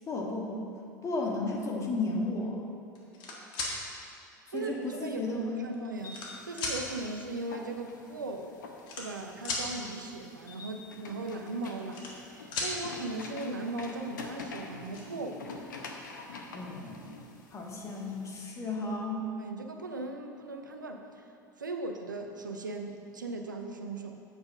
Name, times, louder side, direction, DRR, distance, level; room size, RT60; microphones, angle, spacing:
voice 1, 0.1-0.6 1.0-2.6 4.5-5.7 16.5-17.0 17.5-19.4, left 2 dB, 30° left, -1 dB, 1.5 m, -33 dB
sound 1, 2.9-3.7 4.7-4.8 5.6-6.3 6.6-6.8 7.9-8.0 8.2-8.4 8.8-9.6 11.5-12.3 12.5-12.7 14.2-14.3 14.6-15.0, left 3 dB, 50° left, 1.6 m, -35 dB
voice 2, 4.5-8.6 9.0-15.7 19.4-21.3 21.6-24.2, right 2 dB, 90° right, 4 dB, 0.6 m, -38 dB
sound 2, 6.0-18.4, left 3 dB, 75° left, 0.8 m, -47 dB
8.1 x 4.3 x 6.1 m, 2.5 s
hypercardioid pair, 75°, 10 cm